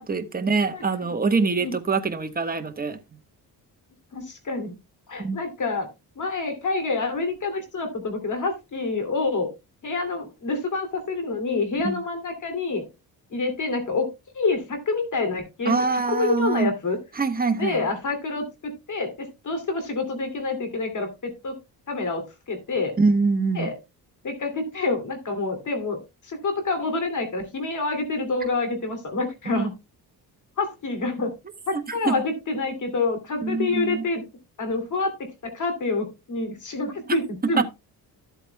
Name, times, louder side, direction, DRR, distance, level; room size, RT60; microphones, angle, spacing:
voice 1, 0.0-3.0 5.2-5.4 11.8-12.0 15.6-16.7 17.2-17.9 23.0-23.7 29.5-29.6 31.7-32.1 33.4-34.0 37.6-37.7, right 4 dB, 25° right, 1.3 m, -24 dB
voice 2, 4.1-4.8 5.1-5.9 6.2-9.5 9.8-12.9 13.3-14.1 14.3-17.0 17.5-21.6 21.9-22.9 23.6-23.7 24.2-26.0 26.2-29.7 30.6-31.3 31.7-34.2 34.6-37.6, left 3 dB, 50° left, 2.7 m, -27 dB
13.5 x 8.1 x 2.2 m
cardioid pair, 100°, 39 cm